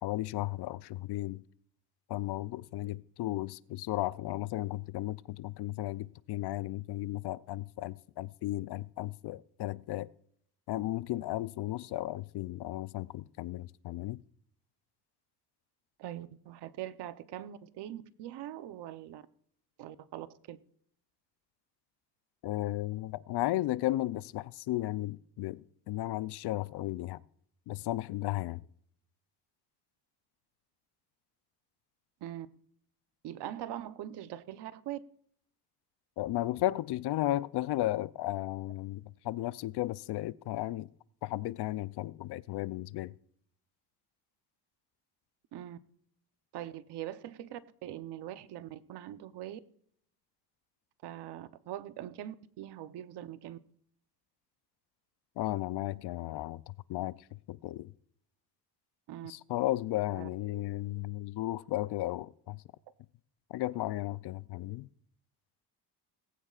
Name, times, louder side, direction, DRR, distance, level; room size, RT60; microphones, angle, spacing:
voice 1, 0.0-1.4 2.1-10.1 10.7-14.2 22.4-27.2 27.7-28.6 36.2-40.9 41.2-43.1 55.4-57.9 59.2-62.6 63.5-64.9, left 16 dB, 70° left, 0.6 m, -34 dB
voice 2, 16.0-19.2 19.8-20.6 32.2-32.5 33.2-35.0 45.5-45.8 46.5-49.6 51.0-53.6 59.1-59.3 60.1-60.3, right 12 dB, 75° right, 0.9 m, -42 dB
18.5 x 16.0 x 2.5 m
cardioid pair, 135°, 41 cm